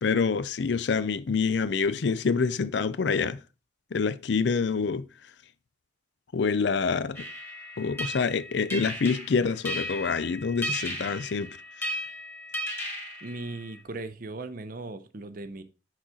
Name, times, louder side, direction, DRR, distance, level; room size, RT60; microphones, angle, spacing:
voice 1, 0.0-3.4 3.9-5.0 6.3-7.3 7.8-11.5, left 5 dB, 65° left, 0.5 m, -26 dB
sound 1, 7.1-13.8, equal, 10° left, 1.6 m, -36 dB
voice 2, 13.2-15.6, right 2 dB, 45° right, 0.7 m, -38 dB
6.3 x 3.9 x 6.3 m
head